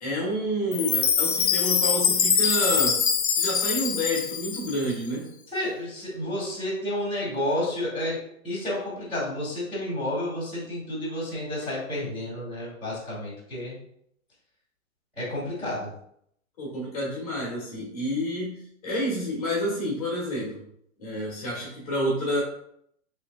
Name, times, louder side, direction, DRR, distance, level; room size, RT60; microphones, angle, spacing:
voice 1, 0.0-3.0 3.3-5.3 16.6-20.6 21.0-22.4, equal, 25° left, -5 dB, 1.1 m, -29 dB
Chime, 0.7-4.9, left 7 dB, 50° left, 0.5 m, -24 dB
voice 2, 5.5-8.2 8.4-13.7 15.2-15.9, left 1 dB, ahead, -16 dB, 1.2 m, -30 dB
3.3 x 3.1 x 3.5 m, 0.71 s
hypercardioid pair, 175°, 41 cm